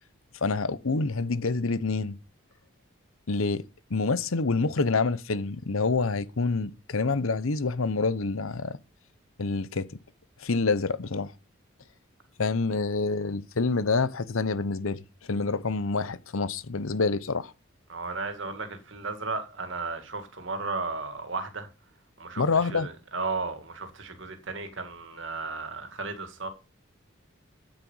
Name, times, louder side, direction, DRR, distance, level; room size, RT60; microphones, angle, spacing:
voice 1, 0.4-2.2 3.3-3.6 3.9-8.8 9.4-10.0 10.4-11.3 12.4-15.0 15.3-17.5 22.4-22.9, left 4 dB, 80° left, 0.8 m, -27 dB
voice 2, 17.9-21.7 22.2-26.5, right 3 dB, 60° right, 2.2 m, -34 dB
9.0 x 8.9 x 5.6 m
head